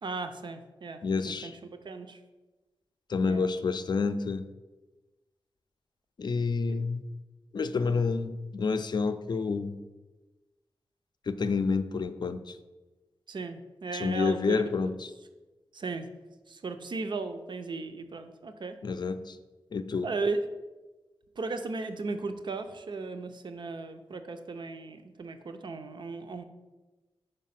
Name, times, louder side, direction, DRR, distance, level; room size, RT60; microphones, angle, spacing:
voice 1, 0.0-2.2 3.2-3.5 6.7-6.8 13.3-14.6 15.7-16.1 16.5-18.8 20.0-20.5 21.4-26.4, right 3 dB, 55° right, 8 dB, 0.6 m, -36 dB
voice 2, 1.0-1.5 3.1-4.5 6.2-7.0 7.5-9.8 11.3-12.6 13.9-15.1 18.8-19.4 19.7-20.1, left 4 dB, 50° left, 10 dB, 0.4 m, -29 dB
5.2 x 4.6 x 5.8 m, 1.2 s
wide cardioid pair, 120°, 9 cm